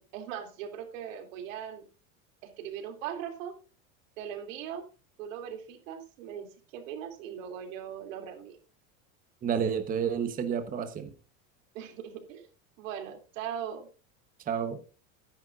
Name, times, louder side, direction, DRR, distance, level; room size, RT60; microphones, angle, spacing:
voice 1, 0.0-1.8 2.4-3.6 4.2-4.9 5.2-8.6 11.7-12.5 12.8-13.9, right 9 dB, 80° right, 5 dB, 3.0 m, -39 dB
voice 2, 9.4-11.1 14.4-14.8, right 7 dB, 20° right, 8 dB, 1.1 m, -30 dB
14.0 x 10.5 x 2.5 m, 0.36 s
supercardioid pair, 145°, 38 cm